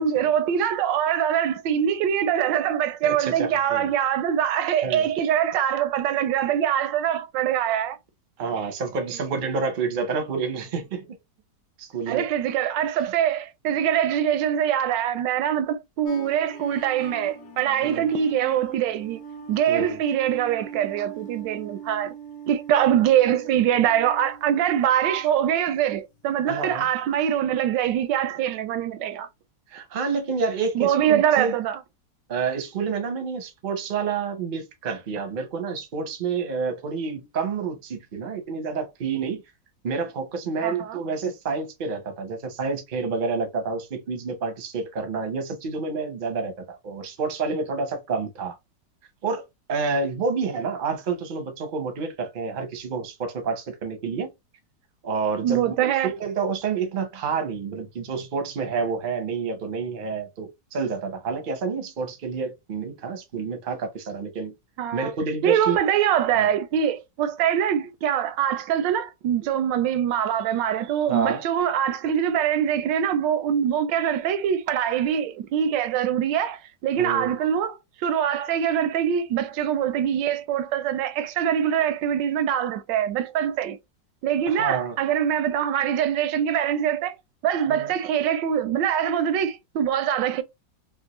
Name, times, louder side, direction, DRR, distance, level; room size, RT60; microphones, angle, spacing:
voice 1, 0.0-8.0 12.1-19.2 19.5-22.1 22.5-29.3 30.7-31.8 40.6-41.0 55.4-56.1 64.8-65.1 65.4-83.8 84.2-87.2 87.4-90.4, right 9 dB, 85° right, 1.2 m, -23 dB
voice 2, 3.0-3.9 4.8-5.1 8.4-11.1 11.8-12.3 17.8-18.1 19.7-20.0 26.5-26.9 29.7-31.5 32.3-39.4 39.8-48.6 49.2-49.4 49.7-54.3 55.0-64.5 64.9-65.8 66.3-66.5 71.1-71.4 77.0-77.3 84.5-85.0 87.7-87.9, right 5 dB, 45° right, 0.6 m, -29 dB
sound 1, 16.1-25.5 25.9-26.3, right 5 dB, 60° left, 0.9 m, -42 dB
3.4 x 2.4 x 2.9 m
omnidirectional pair, 1.9 m